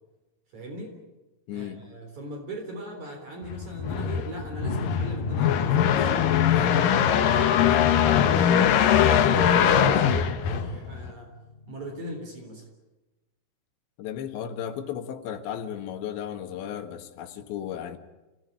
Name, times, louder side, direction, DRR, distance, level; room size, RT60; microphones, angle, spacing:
voice 1, 0.5-0.9 1.5-6.3 6.6-11.3 11.7-12.6, right 1 dB, 45° right, 4.8 m, -39 dB
voice 2, 1.5-1.8 14.0-18.0, left 9 dB, 80° left, 3.9 m, -35 dB
sound 1, 3.5-11.1, left 9 dB, 65° left, 2.5 m, -21 dB
sound 2, 11.2-12.3, left 3 dB, 25° left, 1.4 m, -39 dB
28.0 x 18.0 x 10.0 m
omnidirectional pair, 5.0 m